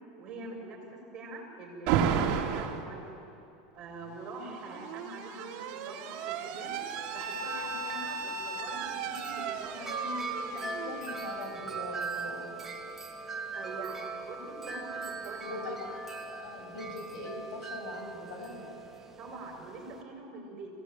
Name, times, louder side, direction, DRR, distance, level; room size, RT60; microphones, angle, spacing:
voice 1, 0.2-3.3 3.7-6.8 7.1-10.7 13.5-14.9 15.2-15.7 19.2-20.7, right 2 dB, 30° right, 0 dB, 6.6 m, -44 dB
Alarm, 1.9-2.8 4.1-11.8, right 7 dB, 50° right, 2.5 m, -34 dB
Wind chime, 6.7-20.0, right 3 dB, 10° right, 2.0 m, -40 dB
voice 2, 10.8-12.5 15.4-18.8, left 2 dB, 75° left, 2 dB, 7.5 m, -42 dB
26.0 x 18.0 x 9.1 m, 2.7 s
supercardioid pair, 150°, 3 cm